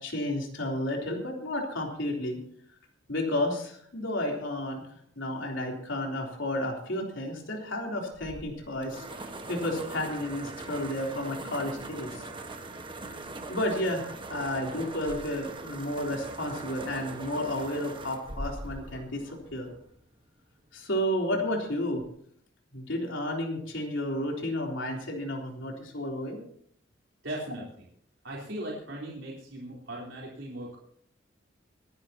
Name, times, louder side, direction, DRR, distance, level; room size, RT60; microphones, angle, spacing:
voice 1, 0.0-2.4 3.1-4.8 5.1-12.3 13.0-13.2 13.5-19.2 19.5-19.7 20.7-22.0 22.7-26.4, left 1 dB, 90° left, 0 dB, 3.6 m, -32 dB
sound 1, 8.1-20.0, right 2 dB, 25° right, 1.4 m, -41 dB
voice 2, 27.2-27.8 28.2-30.8, right 1 dB, 90° right, -4 dB, 3.9 m, -38 dB
26.0 x 11.0 x 2.9 m, 0.62 s
head